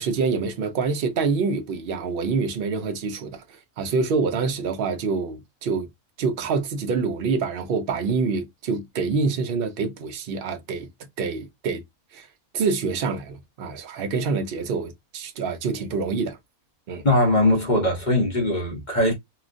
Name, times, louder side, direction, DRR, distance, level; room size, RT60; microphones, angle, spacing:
voice 1, 0.0-5.9 6.2-10.9 11.2-11.8 12.1-12.3 12.5-16.4 16.9-17.0, right 4 dB, 55° right, 0.7 m, -26 dB
voice 2, 17.0-19.1, left 1 dB, 35° left, 0.9 m, -20 dB
3.1 x 2.3 x 2.5 m
omnidirectional pair, 1.5 m